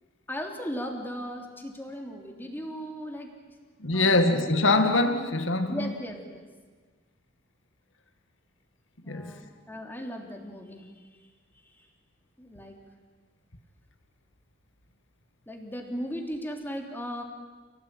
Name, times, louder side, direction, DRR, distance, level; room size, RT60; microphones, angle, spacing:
voice 1, 0.3-3.3 3.9-4.2 5.7-6.5 9.0-11.3 11.7-11.8 12.4-12.8 15.5-17.2, equal, 10° left, 3.5 m, -37 dB
voice 2, 3.8-5.9 9.1-9.3, left 2 dB, 75° left, 2.0 m, -23 dB
29.0 x 18.0 x 9.3 m
head